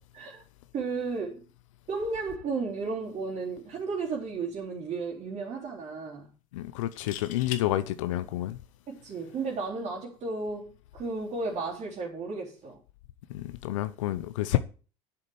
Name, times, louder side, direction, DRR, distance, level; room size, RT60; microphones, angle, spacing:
voice 1, 0.7-1.4 1.9-6.3 8.9-12.8, right 4 dB, 45° right, 3.5 m, -34 dB
sound 1, 4.0-4.2 4.5-4.6 6.8-7.6 9.5-9.7, left 10 dB, 55° left, 1.6 m, -40 dB
voice 2, 6.5-8.6 13.3-14.6, left 15 dB, 85° left, 0.8 m, -29 dB
8.3 x 7.0 x 7.1 m
supercardioid pair, 90°, 16 cm